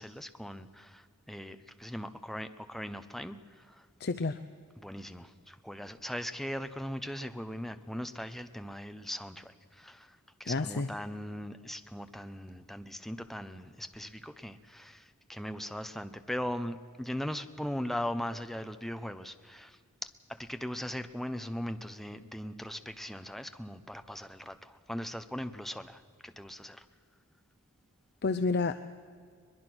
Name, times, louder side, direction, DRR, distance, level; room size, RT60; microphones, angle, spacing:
voice 1, 0.0-3.9 4.8-26.8, equal, ahead, 9 dB, 0.8 m, -39 dB
voice 2, 4.0-4.4 10.5-10.9 28.2-28.8, left 4 dB, 50° left, 10 dB, 0.6 m, -29 dB
22.0 x 21.5 x 6.2 m, 2.1 s
head